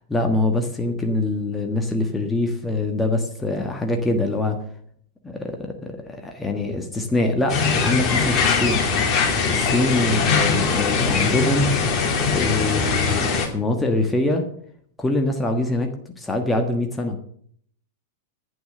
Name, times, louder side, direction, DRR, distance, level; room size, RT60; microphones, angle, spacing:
voice 1, 0.1-4.6 5.2-8.9 9.5-11.7 12.3-14.4 15.0-17.2, left 2 dB, 10° left, 4 dB, 1.5 m, -24 dB
sound 1, 7.5-13.5, left 5 dB, 30° left, 2.7 m, -21 dB
11.5 x 9.1 x 6.6 m, 0.62 s
figure-of-eight pair, 95°, 0 cm